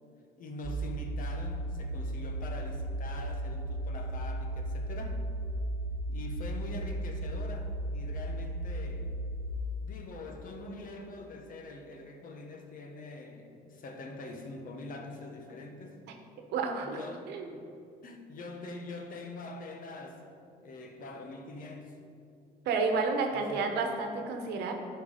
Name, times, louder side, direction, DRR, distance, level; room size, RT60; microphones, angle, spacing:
voice 1, 0.4-5.2 6.1-9.1 9.8-16.0 16.8-17.2 17.5-17.7 18.0-20.2 20.6-22.0 23.3-23.6, left 3 dB, 55° left, 4 dB, 1.2 m, -44 dB
sound 1, 0.6-9.5, right 1 dB, 40° right, 0.7 m, -35 dB
voice 2, 16.5-17.0 17.3-17.5 22.6-24.7, right 4 dB, 80° right, 4 dB, 1.1 m, -30 dB
11.0 x 4.6 x 5.1 m, 2.5 s
cardioid pair, 110°, 17 cm